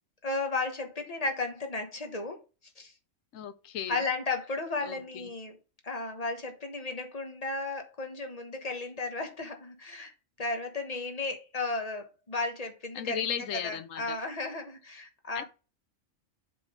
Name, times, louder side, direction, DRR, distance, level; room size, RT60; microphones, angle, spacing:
voice 1, 0.2-2.4 2.8-2.9 3.9-5.6 5.8-10.1 10.4-15.4, left 3 dB, 30° left, 1.2 m, -34 dB
voice 2, 3.3-4.0 4.9-5.3 12.9-14.2 15.3-15.4, left 9 dB, 75° left, 1.1 m, -35 dB
7.5 x 3.8 x 5.0 m
omnidirectional pair, 1.4 m